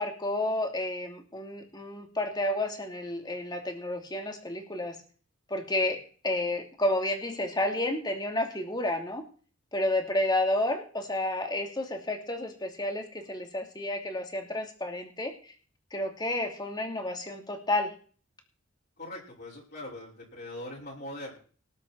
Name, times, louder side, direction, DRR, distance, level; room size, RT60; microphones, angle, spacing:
voice 1, 0.0-5.0 5.5-9.2 9.7-15.5 15.9-17.9, left 1 dB, 20° left, 4 dB, 2.8 m, -31 dB
voice 2, 19.0-21.4, left 1 dB, 50° left, -5 dB, 5.7 m, -41 dB
19.5 x 10.0 x 4.6 m, 0.41 s
head